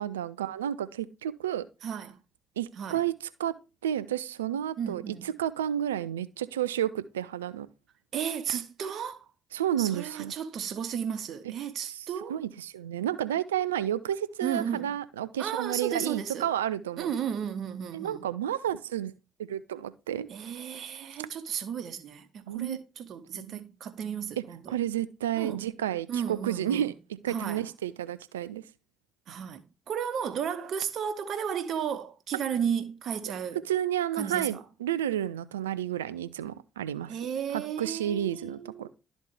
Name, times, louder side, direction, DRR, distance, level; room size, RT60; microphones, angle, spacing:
voice 1, 0.0-1.6 2.6-3.1 3.4-3.5 3.8-7.7 9.5-10.3 11.9-12.0 12.3-17.1 17.9-19.1 19.4-20.3 22.5-22.8 23.3-23.6 24.7-26.9 27.2-28.6 33.7-37.2 37.5-38.9, right 11 dB, 85° right, 0.3 m, -31 dB
voice 2, 1.8-2.2 2.8-3.0 4.8-5.3 8.1-9.3 9.8-12.4 14.4-14.9 15.4-16.5 17.0-18.2 20.3-24.8 25.3-25.7 26.1-26.9 27.3-27.6 29.3-33.6 34.1-34.6 37.1-38.9, right 8 dB, 60° right, 0.9 m, -34 dB
12.0 x 4.2 x 3.2 m
figure-of-eight pair, 45°, 0 cm